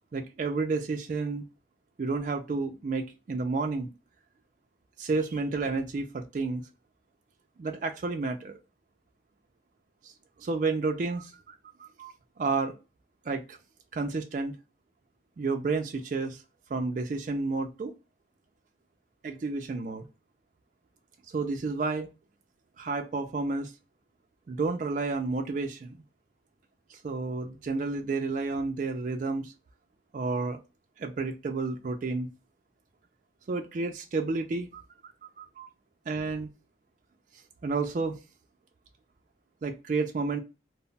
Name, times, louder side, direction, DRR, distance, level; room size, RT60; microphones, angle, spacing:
voice 1, 0.1-1.4 2.0-3.9 5.0-6.6 7.6-8.6 10.0-10.1 10.4-11.4 11.8-12.7 13.3-13.6 13.9-14.5 15.4-16.4 16.7-17.9 19.2-20.1 21.3-22.1 22.8-23.7 24.5-26.0 26.9-29.5 30.1-30.6 31.0-32.3 33.5-34.8 35.2-35.7 36.1-36.5 37.6-38.2 39.6-40.4, right 3 dB, 45° right, 0.3 m, -31 dB
2.2 x 2.0 x 3.7 m
head